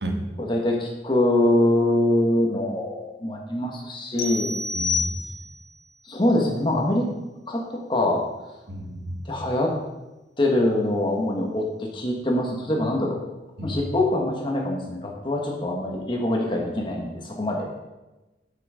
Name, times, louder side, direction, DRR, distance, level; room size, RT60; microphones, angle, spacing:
voice 1, 0.4-4.6 6.0-7.1 7.5-8.2 9.3-9.7 10.4-13.2 13.6-17.7, left 1 dB, 30° left, -1 dB, 1.2 m, -24 dB
sound 1, 4.2-5.7, left 4 dB, 60° left, 1.2 m, -28 dB
voice 2, 4.7-5.2 8.7-9.2 13.6-13.8, right 1 dB, 65° right, 3 dB, 1.3 m, -31 dB
7.8 x 5.8 x 5.0 m, 1.1 s
head